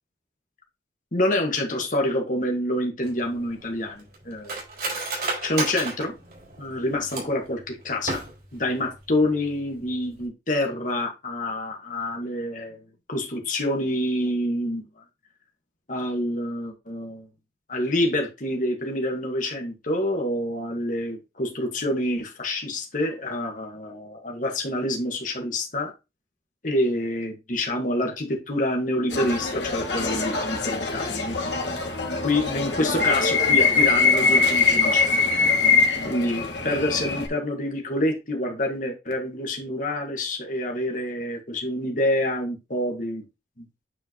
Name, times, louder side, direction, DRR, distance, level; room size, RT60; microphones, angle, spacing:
voice 1, 1.1-4.6 5.4-6.1 6.6-8.2 8.5-12.8 13.1-14.8 15.9-17.3 17.7-25.9 26.6-31.4 32.2-35.6 36.0-43.2 43.6-43.7, left 1 dB, 45° left, 1 dB, 1.9 m, -27 dB
Cutlery silverware, 3.0-7.5 7.9-8.6 9.0-9.1 9.4-9.8 10.1-10.3, right 3 dB, 60° right, 4.1 m, -32 dB
sound 1, 29.1-37.3, left 4 dB, 80° left, 1.7 m, -22 dB
8.9 x 4.6 x 3.0 m, 0.26 s
head